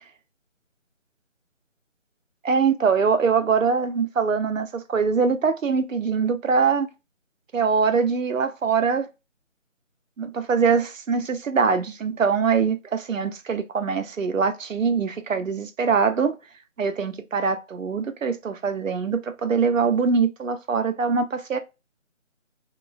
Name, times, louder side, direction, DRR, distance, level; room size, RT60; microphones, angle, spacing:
voice 1, 2.4-6.9 7.5-9.1 10.2-16.4 16.8-21.6, right 5 dB, 80° right, 0.7 m, -23 dB
3.0 x 2.4 x 2.4 m
figure-of-eight pair, 180°, 38 cm